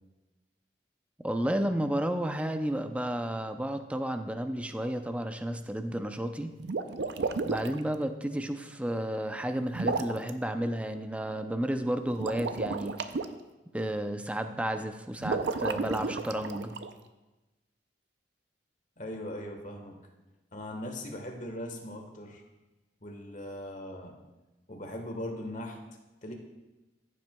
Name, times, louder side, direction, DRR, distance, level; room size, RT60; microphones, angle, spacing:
voice 1, 1.2-6.5 7.5-13.1 13.7-16.7, right 1 dB, 5° right, 7 dB, 0.4 m, -32 dB
sound 1, 6.6-7.8 9.7-10.3 12.1-13.2 15.2-16.9, right 4 dB, 75° right, 0.5 m, -32 dB
voice 2, 19.0-19.9 20.5-22.4 23.0-24.2 24.7-25.8 26.2-26.3, left 1 dB, 45° left, 3 dB, 1.3 m, -39 dB
14.5 x 7.6 x 2.2 m, 1.1 s
head